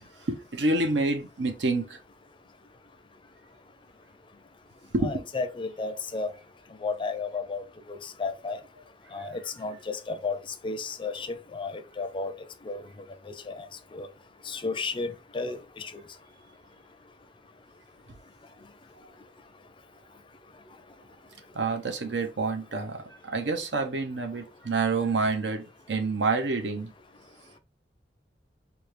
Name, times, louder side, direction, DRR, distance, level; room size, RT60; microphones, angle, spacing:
voice 1, 0.3-2.0 4.9-5.1 21.5-26.9, right 3 dB, 80° right, 0.8 m, -28 dB
voice 2, 5.0-6.3 6.8-7.6 7.9-8.6 9.1-10.4 10.6-12.3 12.7-12.8 13.5-13.7 13.9-14.1 14.5-15.9, left 4 dB, 30° left, 0.5 m, -33 dB
4.3 x 2.3 x 3.2 m
head